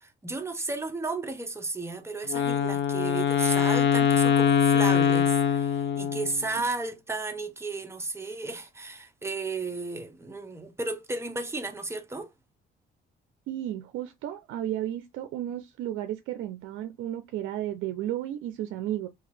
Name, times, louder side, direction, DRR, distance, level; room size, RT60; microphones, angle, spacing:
voice 1, 0.0-12.3, right 3 dB, 15° right, 0.7 m, -34 dB
Wind instrument woodwind instrument, 2.3-6.5, left 8 dB, 65° left, 0.6 m, -23 dB
voice 2, 13.5-19.1, right 12 dB, 85° right, 0.4 m, -33 dB
2.8 x 2.4 x 3.1 m
cardioid pair, 90°, 20 cm